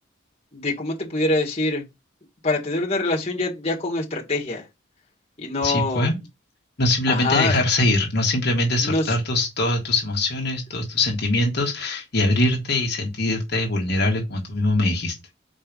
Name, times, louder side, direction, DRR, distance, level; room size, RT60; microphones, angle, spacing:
voice 1, 0.5-1.8 2.4-4.7 5.4-6.1 7.1-7.6 8.8-9.2, left 2 dB, 30° left, 1.7 m, -24 dB
voice 2, 5.6-6.2 6.8-15.1, left 2 dB, 55° left, 1.4 m, -22 dB
4.7 x 4.5 x 5.2 m
head